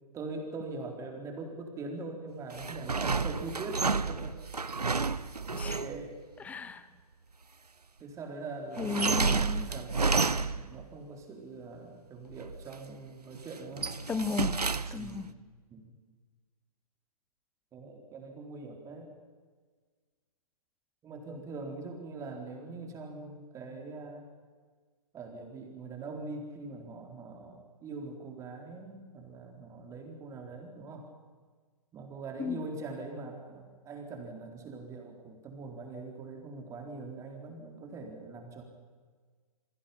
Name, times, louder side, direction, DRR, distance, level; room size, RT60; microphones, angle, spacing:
voice 1, 0.1-4.4 5.5-6.2 8.0-9.4 9.7-13.9 15.0-15.2 15.7-15.9 17.7-19.1 21.0-24.3 25.1-31.1 31.9-38.6, right 3 dB, 15° right, 3 dB, 3.8 m, -42 dB
sound 1, 2.5-6.0 8.8-10.8 12.3-12.9 13.3-15.2, right 4 dB, 85° right, 0.9 m, -31 dB
voice 2, 5.5-5.8 6.4-6.9 8.8-9.7 14.1-15.3 32.4-32.7, left 6 dB, 5° left, 15 dB, 0.8 m, -35 dB
28.0 x 23.5 x 5.8 m, 1.5 s
figure-of-eight pair, 125°, 20 cm